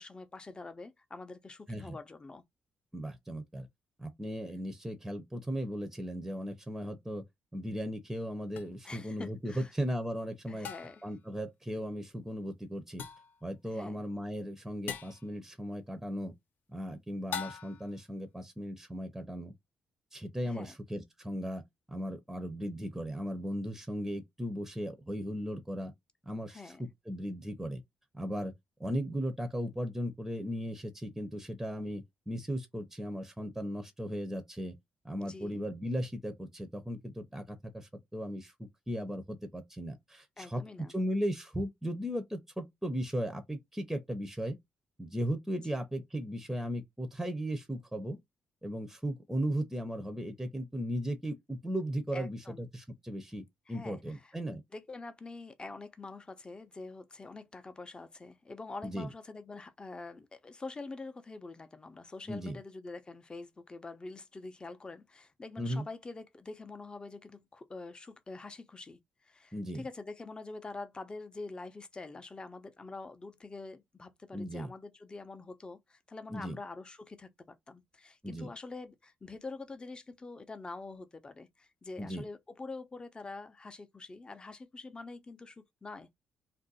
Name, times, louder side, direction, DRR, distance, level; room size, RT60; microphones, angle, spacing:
voice 1, 0.0-2.4 8.8-9.7 10.5-11.0 13.7-14.0 20.5-20.7 26.5-26.9 35.2-35.7 40.4-40.9 52.1-52.6 53.7-54.3 54.7-86.1, left 3 dB, 30° left, 0.7 m, -45 dB
voice 2, 2.9-3.7 4.0-7.2 7.5-10.7 11.0-13.0 13.4-16.3 16.7-19.5 20.1-21.6 21.9-25.9 26.3-27.8 28.1-28.5 28.8-34.8 35.0-40.6 40.9-44.6 45.0-48.2 48.6-54.6 58.8-59.1 62.3-62.6 65.6-65.9 69.5-69.8 74.3-74.7 76.3-76.6 78.2-78.5 82.0-82.2, equal, 5° right, 0.7 m, -37 dB
sound 1, 8.6-8.7 10.6-11.1 13.0-13.4 14.9-15.3 17.3-17.9, left 8 dB, 70° left, 0.5 m, -40 dB
2.6 x 2.1 x 3.9 m
cardioid pair, 70°, 3 cm